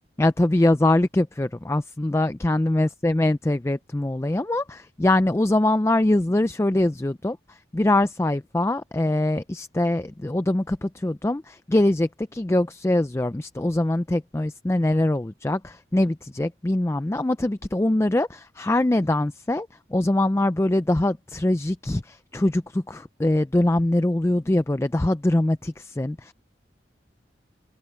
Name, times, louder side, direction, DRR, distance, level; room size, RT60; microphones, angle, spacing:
voice 1, 0.2-26.3, left 1 dB, 15° left, 0.4 m, -23 dB
head